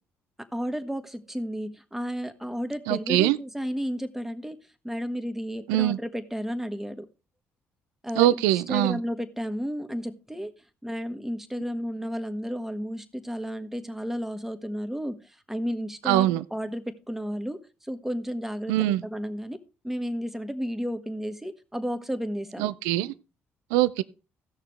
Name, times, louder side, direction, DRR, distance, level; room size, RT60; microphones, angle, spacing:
voice 1, 0.5-4.6 4.8-7.0 8.0-10.5 10.8-15.2 15.5-19.6 19.8-22.7, equal, 5° right, 1.4 m, -32 dB
voice 2, 2.9-3.4 5.7-6.0 8.2-9.0 16.1-16.4 18.7-19.0 22.6-23.1 23.7-24.0, right 14 dB, 80° right, 0.4 m, -23 dB
16.0 x 6.5 x 3.3 m
hypercardioid pair, 50°, 6 cm